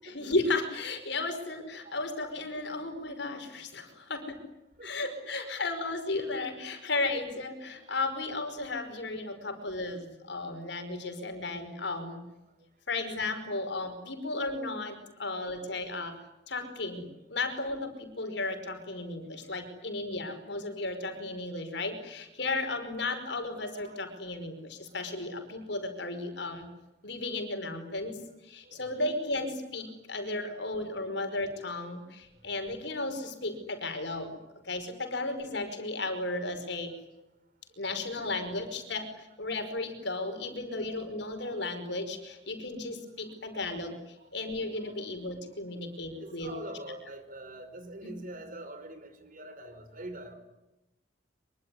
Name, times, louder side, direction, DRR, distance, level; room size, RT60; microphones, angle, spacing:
voice 1, 0.0-4.4 4.8-12.2 12.9-16.2 16.5-26.7 27.0-34.4 34.6-36.9 37.8-46.5 48.0-48.1, left 2 dB, 65° left, 7 dB, 5.3 m, -34 dB
voice 2, 46.2-50.3, right 1 dB, 45° right, 8 dB, 5.2 m, -44 dB
25.0 x 24.0 x 9.8 m, 0.95 s
head